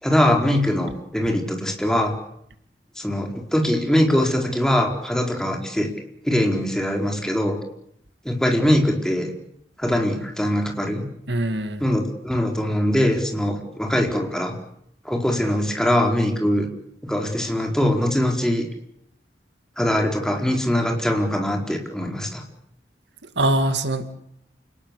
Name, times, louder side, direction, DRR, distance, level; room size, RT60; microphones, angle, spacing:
voice 1, 0.0-2.1 3.0-5.9 6.2-7.6 8.2-9.3 9.8-11.1 11.8-14.5 15.0-16.7 17.0-18.7 19.8-22.4, left 1 dB, 5° left, 2 dB, 4.5 m, -22 dB
voice 2, 11.3-11.8 23.4-24.1, right 1 dB, 80° right, 9 dB, 2.5 m, -22 dB
28.5 x 19.0 x 8.6 m, 0.73 s
head